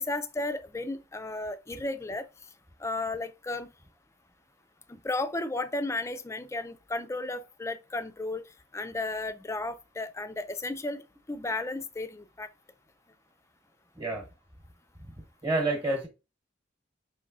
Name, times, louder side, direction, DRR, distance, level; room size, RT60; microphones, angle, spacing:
voice 1, 0.0-2.3 2.8-3.7 4.9-8.4 8.7-12.5, left 2 dB, 15° left, 0.4 m, -34 dB
voice 2, 13.9-14.3 15.1-16.1, right 2 dB, 20° right, 1.1 m, -29 dB
5.2 x 3.1 x 2.6 m
head